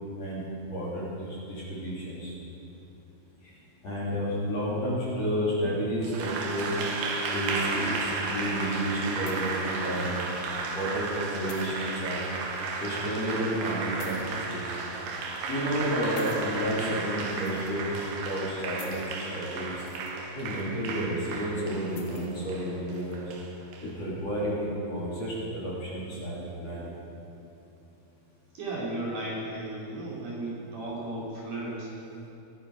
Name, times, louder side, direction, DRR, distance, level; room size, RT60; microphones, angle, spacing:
voice 1, 0.2-2.3 3.4-3.6 3.8-6.8 7.3-10.2 10.7-12.4 12.8-14.8 15.5-17.9 18.2-19.8 20.3-23.2 23.8-26.9, equal, 40° left, -7 dB, 3.9 m, -31 dB
sound 1, 5.2-5.8 6.8-7.5 8.7-9.7 10.1-10.3 11.5-11.7 12.6-12.7 14.0-14.2 15.0-15.4 16.2-16.4 17.4-17.9 18.8-19.1 19.6-20.1 20.5-20.6 21.9-22.4 22.9-23.1, left 6 dB, 85° left, 1.3 m, -48 dB
Applause, 6.0-23.9, right 4 dB, 80° right, 3.4 m, -34 dB
voice 2, 28.5-31.9, right 1 dB, 55° right, -6 dB, 3.9 m, -35 dB
22.5 x 9.8 x 4.8 m, 2.9 s
omnidirectional pair, 4.7 m